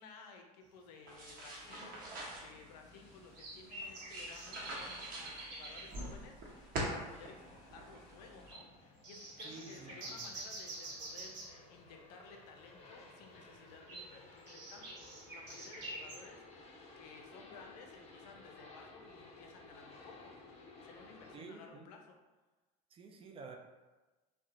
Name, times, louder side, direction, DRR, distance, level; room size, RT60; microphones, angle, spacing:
voice 1, 0.0-20.3 20.8-22.2, left 5 dB, 85° left, 3 dB, 0.4 m, -56 dB
sound 1, 1.1-8.5, right 1 dB, 45° right, 0.8 m, -45 dB
sound 2, 1.1-1.2 2.0-2.1 3.3-6.1 6.7-6.8 7.1-7.2 7.6-7.9 8.5-8.6 9.0-11.6 13.7-16.2, right 2 dB, 75° right, 0.9 m, -47 dB
sound 3, 1.6-21.4, left 2 dB, 30° left, 0.6 m, -58 dB
voice 2, 9.4-10.2 21.3-21.9 22.9-23.6, right 4 dB, 30° right, 3 dB, 0.3 m, -51 dB
2.7 x 2.1 x 2.4 m, 1.2 s
supercardioid pair, 95°, 21 cm